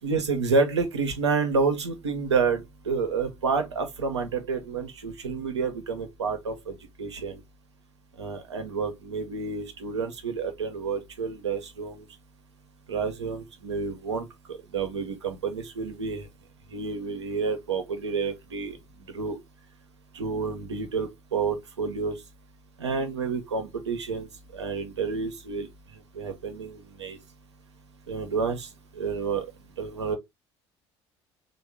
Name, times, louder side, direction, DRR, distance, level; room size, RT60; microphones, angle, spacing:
voice 1, 0.0-7.4 8.2-12.1 12.9-16.3 16.7-18.8 19.1-19.4 20.1-22.2 22.8-27.2 28.1-29.5 29.8-30.2, right 4 dB, 85° right, 0.6 m, -29 dB
3.5 x 2.1 x 3.2 m
figure-of-eight pair, 55°, 14 cm